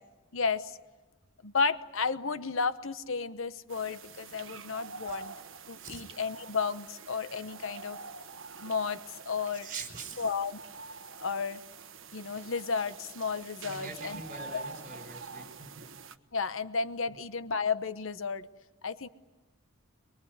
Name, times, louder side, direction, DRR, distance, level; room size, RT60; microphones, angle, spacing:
voice 1, 0.3-0.8 1.4-5.3 5.7-8.0 8.6-9.0 9.2-9.7 10.2-10.6 11.2-11.6 12.1-14.2 16.3-18.5 18.8-19.1, left 5 dB, 65° left, 13 dB, 1.0 m, -32 dB
sound 1, 3.7-16.2, right 4 dB, 60° right, 1.3 m, -46 dB
voice 2, 9.6-10.3 13.6-15.9 17.1-17.2, right 4 dB, 40° right, 5 dB, 4.9 m, -44 dB
24.0 x 23.0 x 9.5 m, 1.2 s
head